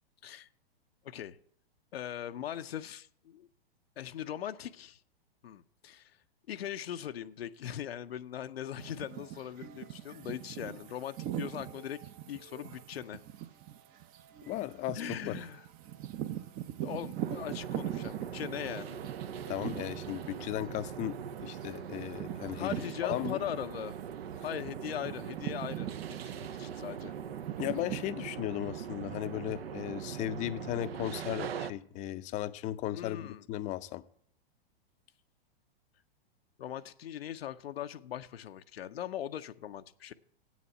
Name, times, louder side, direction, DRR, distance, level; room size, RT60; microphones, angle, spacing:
voice 1, 1.0-1.4 1.9-3.5 4.0-5.0 5.4-6.1 6.5-12.0 12.3-13.2 14.9-15.6 16.8-19.0 22.5-23.9 24.4-25.9 26.3-27.1 32.9-33.4 36.6-40.1, left 10 dB, 85° left, 0.6 m, -40 dB
sound 1, 8.8-23.9 24.3-28.1, right 12 dB, 30° right, 0.6 m, -42 dB
voice 2, 14.5-15.4 19.5-22.7 23.0-23.4 27.6-34.0, left 14 dB, 25° left, 0.5 m, -36 dB
sound 2, 17.2-31.7, right 8 dB, 80° right, 0.7 m, -41 dB
8.1 x 7.1 x 7.5 m
hypercardioid pair, 120°, 30 cm